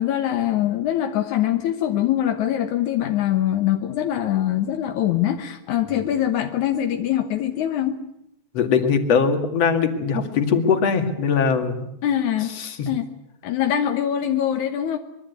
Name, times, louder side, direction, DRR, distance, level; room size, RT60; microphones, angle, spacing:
voice 1, 0.0-8.0 12.0-12.5 12.9-13.1 13.4-15.0, left 11 dB, 80° left, 6 dB, 2.6 m, -23 dB
voice 2, 8.5-11.8 12.5-12.8, left 6 dB, 60° left, 6 dB, 3.3 m, -21 dB
24.5 x 22.5 x 8.3 m, 0.78 s
omnidirectional pair, 3.4 m